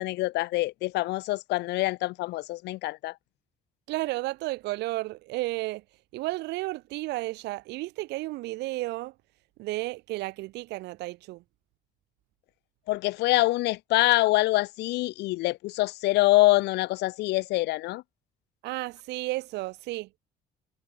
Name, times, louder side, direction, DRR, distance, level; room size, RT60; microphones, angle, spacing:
voice 1, 0.0-3.2 12.9-18.0, left 19 dB, 85° left, 5.3 m, -25 dB
voice 2, 3.9-5.8 6.1-9.1 9.6-11.4 18.6-20.1, right 20 dB, 90° right, 4.6 m, -32 dB
cardioid pair, 110°, 17 cm